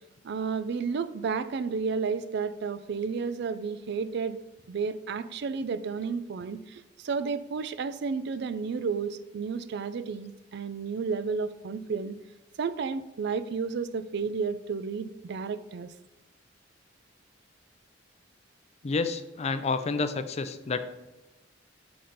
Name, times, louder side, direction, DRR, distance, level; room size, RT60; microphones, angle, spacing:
voice 1, 0.2-4.4 4.7-12.2 12.6-15.9, right 5 dB, 60° right, 14 dB, 0.4 m, -32 dB
voice 2, 18.8-20.8, left 4 dB, 35° left, 9 dB, 0.4 m, -29 dB
5.9 x 5.0 x 3.9 m, 1.0 s
head